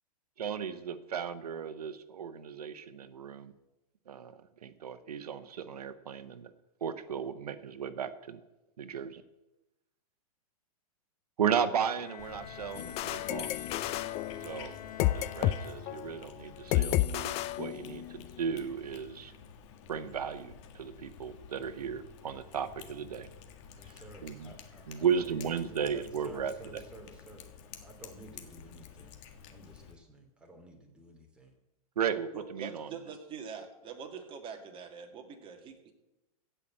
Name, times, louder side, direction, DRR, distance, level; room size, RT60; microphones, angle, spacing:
voice 1, 0.4-3.5 4.1-6.5 6.8-8.4 8.8-9.2 11.4-13.5 14.4-14.7 15.1-19.3 19.9-23.3 24.2-24.5 24.9-26.8 32.0-32.9, right 7 dB, 90° right, 12 dB, 0.9 m, -35 dB
Bowed string instrument, 12.0-16.4, left 10 dB, 85° left, 1.0 m, -47 dB
Cat, 12.2-30.0, left 7 dB, 50° left, 1.8 m, -51 dB
sound 1, 12.8-15.6 15.9-16.1 16.7-18.2, left 14 dB, 35° left, 0.5 m, -31 dB
voice 2, 23.7-29.2 29.5-31.5, right 1 dB, 5° right, 0 dB, 2.8 m, -52 dB
voice 3, 32.3-35.9, right 6 dB, 25° right, 4 dB, 2.1 m, -44 dB
15.5 x 5.7 x 8.5 m, 0.98 s
hypercardioid pair, 130°, 19 cm